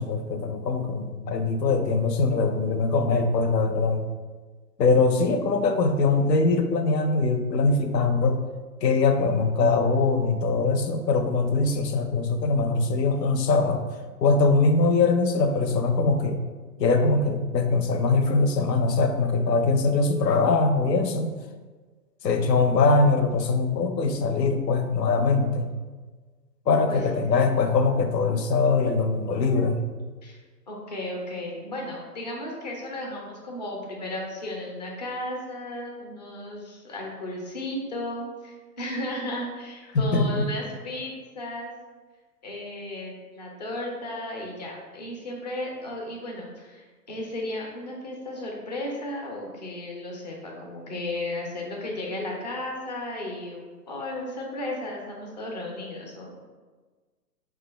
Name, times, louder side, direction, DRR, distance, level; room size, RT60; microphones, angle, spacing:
voice 1, 0.0-4.0 4.8-8.4 8.8-13.8 14.2-16.4 16.8-21.3 22.2-25.7 26.7-29.8 39.9-40.5, left 3 dB, 80° left, 7 dB, 0.7 m, -22 dB
voice 2, 30.7-41.7 42.4-56.5, left 1 dB, 30° left, -1 dB, 0.4 m, -34 dB
4.9 x 2.2 x 3.2 m, 1.4 s
hypercardioid pair, 140°, 49 cm